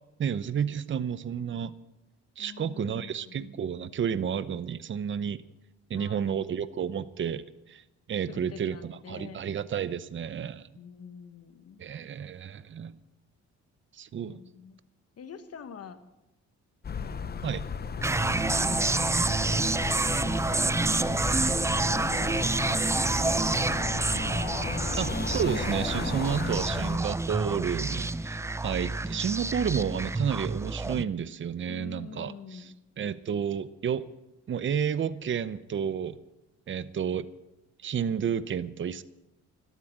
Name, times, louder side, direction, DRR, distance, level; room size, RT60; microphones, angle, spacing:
voice 1, 0.2-1.7 2.4-5.4 5.9-7.8 8.1-10.7 11.8-12.9 14.0-14.4 17.4-17.7 25.0-32.6 33.0-34.0 34.5-36.2 36.7-37.3 37.8-39.0, right 8 dB, 40° right, 16 dB, 0.7 m, -31 dB
voice 2, 2.4-3.5 5.9-6.5 8.3-9.4 10.7-11.9 14.3-14.8 15.2-16.0 16.9-17.2 18.3-19.0 19.9-21.2 21.9-22.8 23.1-23.7 31.7-32.7, left 6 dB, 55° left, 10 dB, 1.4 m, -46 dB
sound 1, 16.8-27.0, left 6 dB, 30° left, 0.8 m, -36 dB
sound 2, 18.0-31.0, right 2 dB, 10° right, 0.4 m, -28 dB
12.5 x 12.5 x 7.5 m, 0.94 s
cardioid pair, 90°, 30 cm